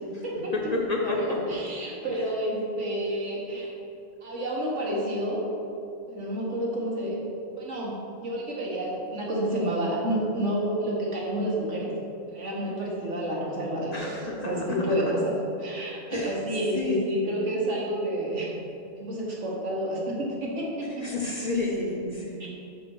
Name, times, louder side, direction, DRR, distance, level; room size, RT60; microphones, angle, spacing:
voice 1, 0.5-1.6 13.9-14.8 16.1-16.3 16.7-17.4 21.0-22.5, left 2 dB, 45° left, -1 dB, 0.6 m, -30 dB
voice 2, 1.0-3.7 4.2-5.5 6.1-7.2 7.6-7.9 8.2-11.9 12.3-18.4 19.0-20.9 22.4-22.5, right 1 dB, 85° right, -4 dB, 1.6 m, -29 dB
5.8 x 4.3 x 5.4 m, 2.7 s
omnidirectional pair, 1.2 m